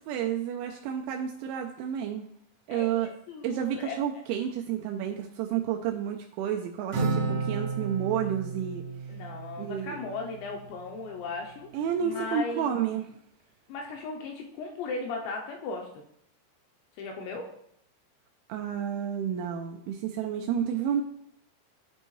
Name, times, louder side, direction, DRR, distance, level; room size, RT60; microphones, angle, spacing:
voice 1, 0.1-2.2 2.7-3.1 3.4-8.8 9.6-10.0 11.7-13.1 18.5-21.0, right 9 dB, 85° right, 2 dB, 2.7 m, -30 dB
voice 2, 2.7-4.0 9.1-11.7 12.0-13.0 13.7-16.0 17.0-17.5, left 3 dB, 80° left, 1 dB, 2.6 m, -37 dB
Acoustic guitar, 6.9-10.6, right 4 dB, 65° right, 1.6 m, -32 dB
12.0 x 4.4 x 3.1 m, 0.72 s
omnidirectional pair, 5.6 m